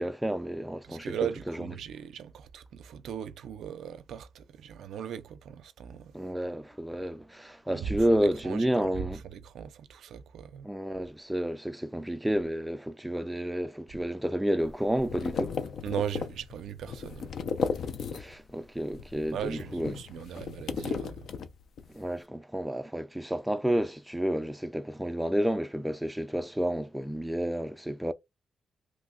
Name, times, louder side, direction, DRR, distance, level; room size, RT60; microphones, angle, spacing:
voice 1, 0.0-1.2 1.5-1.6 6.1-9.2 10.6-15.5 18.1-19.9 21.9-28.1, right 1 dB, 5° right, 0.3 m, -30 dB
voice 2, 0.8-6.1 7.7-10.7 15.8-17.3 19.3-21.3, right 8 dB, 85° right, 0.4 m, -38 dB
sound 1, 14.6-18.5 18.8-21.9, left 5 dB, 70° left, 0.4 m, -35 dB
3.1 x 2.1 x 3.6 m
cardioid pair, 95°, 0 cm